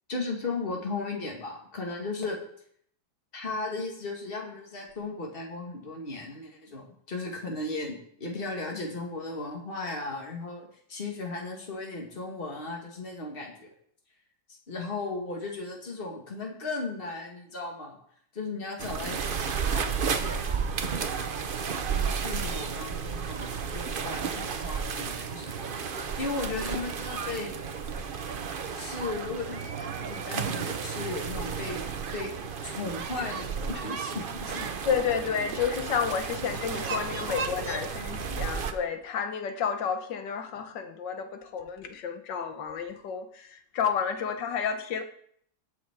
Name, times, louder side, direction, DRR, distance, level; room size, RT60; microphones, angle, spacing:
voice 1, 0.1-2.4 3.3-13.7 14.7-18.0 18.3-19.4 19.7-21.0 21.9-25.6 25.9-27.5 28.7-32.3 32.6-34.7 36.2-36.4 37.1-37.8, left 3 dB, 30° left, 2.2 m, -36 dB
Children Playing In Bay, 18.8-38.7, right 6 dB, 85° right, 0.4 m, -33 dB
voice 2, 34.9-45.0, left 7 dB, 65° left, 1.7 m, -31 dB
17.5 x 6.3 x 4.6 m
omnidirectional pair, 2.1 m